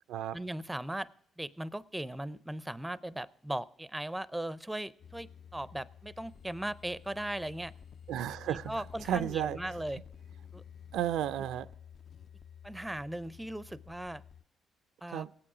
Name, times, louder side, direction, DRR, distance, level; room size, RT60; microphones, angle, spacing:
voice 1, 0.3-1.1 1.4-7.7 8.5-10.0 10.5-10.6 12.6-14.2 15.0-15.3, right 1 dB, 5° right, 0.4 m, -38 dB
sound 1, 5.0-14.4, left 8 dB, 55° left, 0.5 m, -51 dB
voice 2, 8.1-9.7 10.9-11.7 15.1-15.3, right 11 dB, 85° right, 0.4 m, -33 dB
18.0 x 8.7 x 4.9 m
cardioid pair, 90°, 0 cm